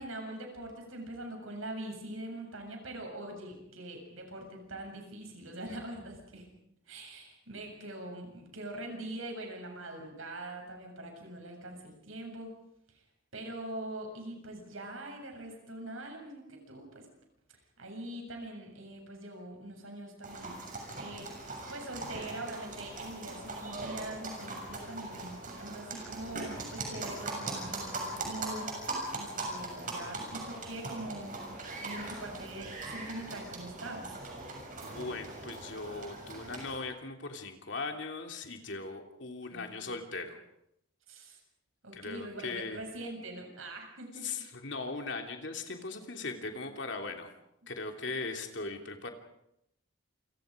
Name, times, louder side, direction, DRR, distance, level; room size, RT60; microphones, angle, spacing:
voice 1, 0.0-6.5 6.9-12.6 12.9-13.0 13.3-17.1 17.8-20.5 20.9-21.3 21.7-31.3 31.8-34.2 39.5-39.9 41.1-41.4 41.8-44.5, right 1 dB, 80° right, 2 dB, 7.6 m, -43 dB
sound 1, 20.2-36.8, right 2 dB, 40° right, 7.0 m, -40 dB
voice 2, 34.8-40.4 41.9-42.8 44.2-47.3 47.7-49.1, left 3 dB, 60° left, 4 dB, 3.1 m, -39 dB
28.5 x 25.5 x 5.2 m, 0.79 s
head